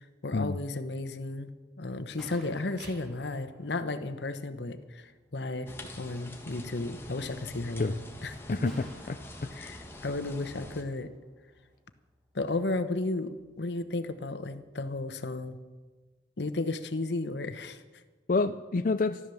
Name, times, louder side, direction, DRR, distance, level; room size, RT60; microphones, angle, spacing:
voice 1, 0.0-1.5 1.8-8.6 9.5-11.1 12.3-15.6 16.4-17.8, left 2 dB, 80° left, 11 dB, 1.0 m, -34 dB
Gunshot gunfire, 2.0-15.7, equal, ahead, 3.3 m, -59 dB
sound 1, 2.6-13.6, right 2 dB, 75° right, 3.8 m, -61 dB
sound 2, 5.7-10.8, left 1 dB, 15° left, 1.5 m, -45 dB
voice 2, 8.5-9.2 9.4-9.5 18.3-19.2, left 3 dB, 50° left, 9 dB, 0.4 m, -28 dB
14.0 x 12.5 x 7.1 m, 1.3 s
head